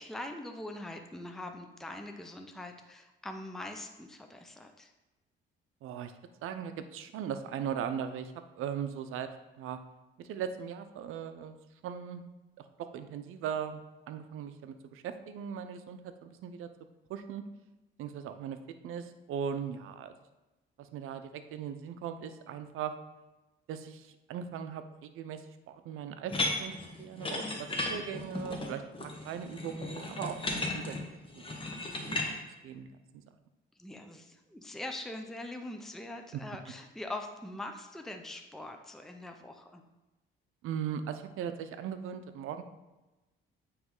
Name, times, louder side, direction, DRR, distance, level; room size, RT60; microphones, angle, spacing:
voice 1, 0.0-4.9 33.8-39.8, left 1 dB, ahead, 5 dB, 0.5 m, -42 dB
voice 2, 5.8-6.1 6.4-9.3 9.6-9.8 10.2-11.6 11.8-12.2 12.6-13.8 14.1-16.7 17.1-17.4 18.0-18.6 18.8-20.1 20.8-22.9 23.7-26.7 27.0-31.0 31.4-31.6 31.9-32.4 32.6-32.9 33.1-33.2 36.3-36.4 40.6-42.6, right 8 dB, 80° right, 9 dB, 0.6 m, -39 dB
sound 1, 26.3-32.3, left 2 dB, 25° left, 1.1 m, -35 dB
9.1 x 3.2 x 3.7 m, 1.1 s
cardioid pair, 85°, 21 cm